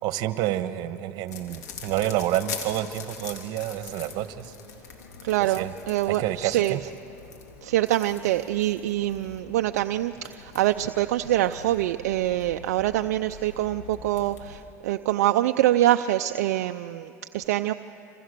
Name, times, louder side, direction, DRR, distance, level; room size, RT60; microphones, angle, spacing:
voice 1, 0.0-4.5 5.4-5.7 6.1-6.8, right 13 dB, 60° right, 11 dB, 1.4 m, -29 dB
sound 1, 1.3-14.6, left 6 dB, 85° left, 3.3 m, -43 dB
voice 2, 5.2-6.8 7.6-17.7, right 14 dB, 80° right, 8 dB, 0.6 m, -25 dB
27.5 x 26.5 x 6.8 m, 2.8 s
hypercardioid pair, 90°, 9 cm